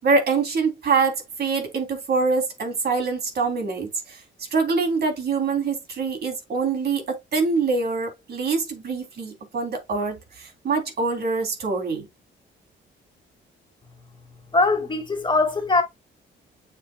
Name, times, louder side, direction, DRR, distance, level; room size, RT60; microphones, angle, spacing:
voice 1, 0.0-12.1, right 4 dB, 55° right, 3.2 m, -25 dB
voice 2, 14.5-15.8, left 3 dB, 25° left, 2.0 m, -21 dB
7.4 x 7.2 x 2.3 m
cardioid pair, 90°, 20 cm